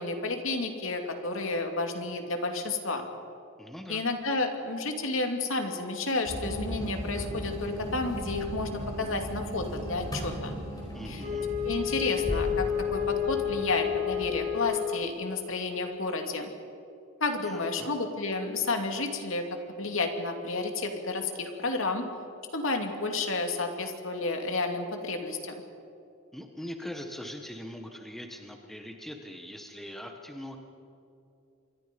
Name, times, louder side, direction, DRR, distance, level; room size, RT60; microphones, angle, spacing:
voice 1, 0.0-3.1 3.9-10.5 11.1-11.2 11.6-16.5 17.2-19.5 19.8-22.1 22.5-25.5, left 3 dB, 65° left, 4 dB, 2.6 m, -31 dB
voice 2, 3.6-4.0 10.9-11.5 17.4-17.9 26.3-30.6, left 1 dB, ahead, 3 dB, 1.5 m, -42 dB
sound 1, 6.2-14.7, equal, 20° left, 4.9 m, -37 dB
Wind instrument woodwind instrument, 11.2-15.4, left 9 dB, 40° right, 2.9 m, -31 dB
27.5 x 23.5 x 5.4 m, 2.6 s
head